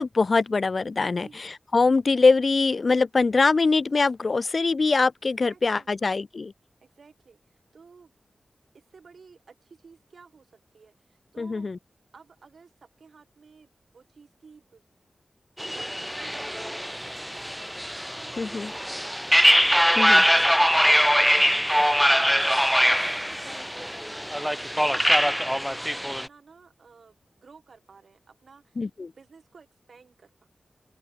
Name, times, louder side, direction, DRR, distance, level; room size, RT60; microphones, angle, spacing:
voice 1, 0.0-6.5 11.4-11.8 18.4-18.7 20.0-20.2 28.8-29.1, left 4 dB, 45° left, 0.7 m, -23 dB
voice 2, 5.4-6.1 6.8-8.1 8.7-11.7 12.1-14.8 15.6-17.7 18.2-19.3 19.7-22.5 22.8-24.2 24.5-28.9 29.2-30.5, right 5 dB, 65° right, 6.5 m, -54 dB
sound 1, 15.6-26.3, equal, ahead, 0.3 m, -22 dB
open air
wide cardioid pair, 135°, 0 cm